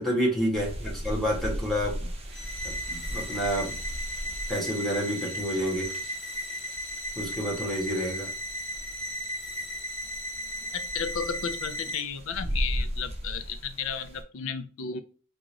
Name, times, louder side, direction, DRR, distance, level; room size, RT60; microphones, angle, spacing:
voice 1, 0.0-2.0 2.6-3.7 4.5-5.9 7.2-8.3, equal, ahead, 1.2 m, -29 dB
sound 1, 0.5-14.2, equal, 30° right, 0.6 m, -37 dB
sound 2, 2.3-12.0, equal, 20° left, 0.6 m, -36 dB
voice 2, 10.7-15.0, left 6 dB, 75° left, 0.5 m, -33 dB
3.7 x 2.4 x 3.0 m
head